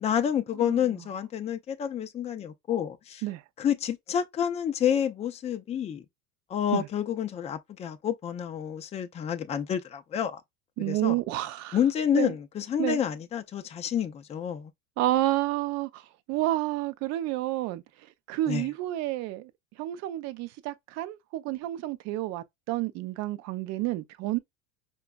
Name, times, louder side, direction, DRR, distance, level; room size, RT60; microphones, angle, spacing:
voice 1, 0.0-3.2 3.6-6.0 6.5-10.4 10.8-11.1 11.7-14.7 18.5-18.7, left 9 dB, 20° left, 0.4 m, -29 dB
voice 2, 10.8-11.8 12.1-12.3 12.8-13.0 15.0-16.0 16.3-17.8 18.3-19.5 19.8-24.4, right 16 dB, 45° right, 0.5 m, -30 dB
5.0 x 2.3 x 2.2 m
supercardioid pair, 125°, 37 cm